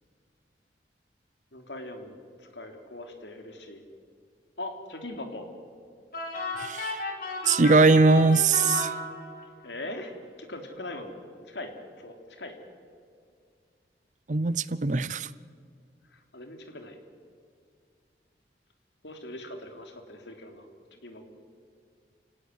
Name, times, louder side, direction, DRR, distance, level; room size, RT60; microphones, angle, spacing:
voice 1, 1.5-2.1 2.4-3.8 4.6-5.5 9.6-10.1 10.4-11.1 11.4-12.6 16.0-17.0 19.0-21.4, left 1 dB, 85° left, 5 dB, 3.4 m, -41 dB
sound 1, 6.1-9.6, left 3 dB, 55° left, 4.3 m, -34 dB
voice 2, 6.6-7.0 7.4-8.9 14.3-15.3, right 3 dB, 45° right, 18 dB, 0.6 m, -21 dB
30.0 x 17.5 x 9.6 m, 2.2 s
head